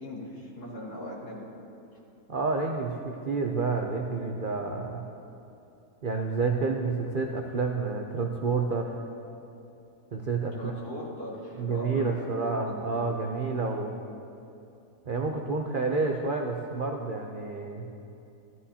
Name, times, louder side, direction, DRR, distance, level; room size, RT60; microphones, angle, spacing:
voice 1, 0.0-1.4 10.5-12.8, equal, 70° left, -5 dB, 2.9 m, -39 dB
voice 2, 2.3-5.0 6.0-9.0 10.1-10.7 11.6-14.0 15.1-17.9, right 4 dB, 60° right, 2 dB, 0.5 m, -29 dB
14.5 x 14.0 x 2.8 m, 2.8 s
omnidirectional pair, 1.7 m